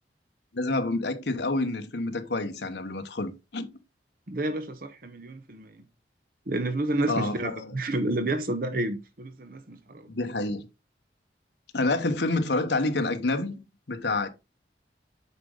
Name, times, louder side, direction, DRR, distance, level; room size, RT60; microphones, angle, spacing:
voice 1, 0.5-3.7 7.1-7.7 10.1-10.7 11.7-13.6 13.9-14.3, left 2 dB, 70° left, 1.0 m, -28 dB
voice 2, 4.3-5.8 6.5-10.1, right 2 dB, 50° right, 0.9 m, -30 dB
8.3 x 5.2 x 3.7 m
head